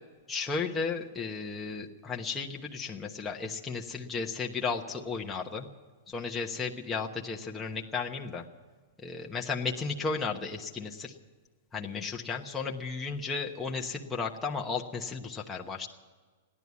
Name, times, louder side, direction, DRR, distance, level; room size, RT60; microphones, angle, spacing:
voice 1, 0.3-5.7 6.1-8.4 9.0-11.1 11.7-15.9, left 4 dB, 10° left, 0 dB, 1.1 m, -34 dB
15.5 x 11.0 x 8.3 m, 1.4 s
hypercardioid pair, 145°, 0 cm